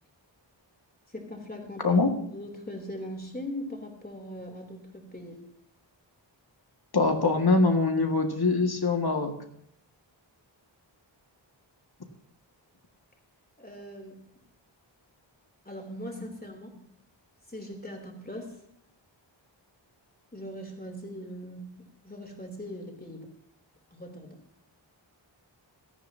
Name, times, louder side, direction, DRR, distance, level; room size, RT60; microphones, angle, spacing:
voice 1, 1.1-2.0 2.3-5.4 13.6-14.2 15.7-16.8 17.5-18.5 20.3-23.3 23.9-24.4, equal, 20° left, 1 dB, 3.5 m, -40 dB
voice 2, 6.9-9.4, left 3 dB, 55° left, 4 dB, 2.0 m, -23 dB
18.0 x 13.5 x 2.9 m, 0.71 s
wide cardioid pair, 70°, 46 cm